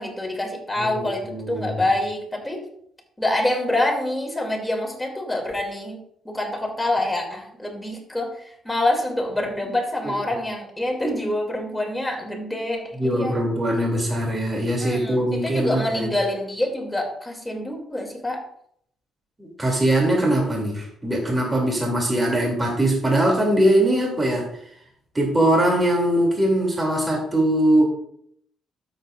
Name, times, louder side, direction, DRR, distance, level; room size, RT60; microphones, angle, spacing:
voice 1, 0.0-2.7 3.2-6.0 6.2-13.4 14.8-18.4, left 1 dB, 10° left, 1 dB, 2.6 m, -26 dB
voice 2, 0.8-1.8 10.0-10.1 13.0-16.1 19.4-24.5 25.1-27.9, right 1 dB, 20° right, -1 dB, 2.7 m, -21 dB
13.0 x 7.4 x 2.5 m, 0.68 s
cardioid pair, 90°, 0 cm